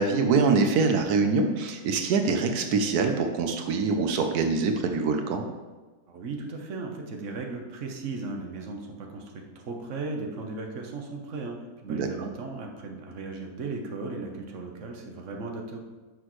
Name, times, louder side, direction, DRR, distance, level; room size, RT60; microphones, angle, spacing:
voice 1, 0.0-5.4 11.9-12.3, right 4 dB, 90° right, 5 dB, 1.3 m, -24 dB
voice 2, 6.1-11.6 11.8-15.8, right 3 dB, 55° right, 2 dB, 1.3 m, -36 dB
11.0 x 6.3 x 3.1 m, 1.3 s
omnidirectional pair, 1.6 m